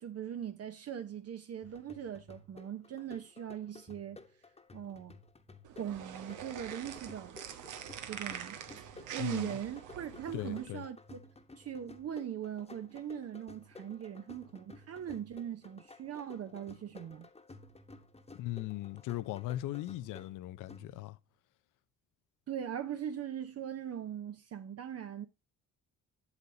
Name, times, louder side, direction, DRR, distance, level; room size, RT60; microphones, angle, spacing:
voice 1, 0.0-4.2 4.7-5.2 5.8-7.4 8.1-8.6 9.1-11.2 11.6-17.3 22.5-25.3, right 9 dB, 55° right, 0.8 m, -40 dB
sound 1, 1.6-21.3, left 3 dB, 20° left, 1.1 m, -55 dB
sound 2, 5.6-10.7, right 9 dB, 90° right, 1.0 m, -45 dB
voice 2, 9.2-9.6 10.3-10.8 18.3-21.2, left 15 dB, 90° left, 0.6 m, -38 dB
8.2 x 7.0 x 2.7 m
cardioid pair, 90°, 30 cm